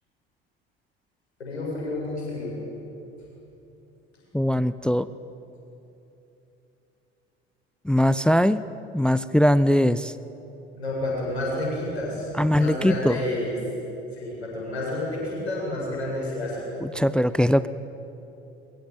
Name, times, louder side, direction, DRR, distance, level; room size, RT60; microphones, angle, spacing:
voice 1, 1.4-2.6 10.7-13.6 14.1-16.7, left 1 dB, 80° left, -3 dB, 7.7 m, -30 dB
voice 2, 4.3-5.1 7.8-8.6 8.9-10.1 12.4-13.2 16.8-17.7, equal, 5° left, 16 dB, 0.5 m, -21 dB
23.0 x 22.0 x 9.1 m, 3.0 s
figure-of-eight pair, 65°, 32 cm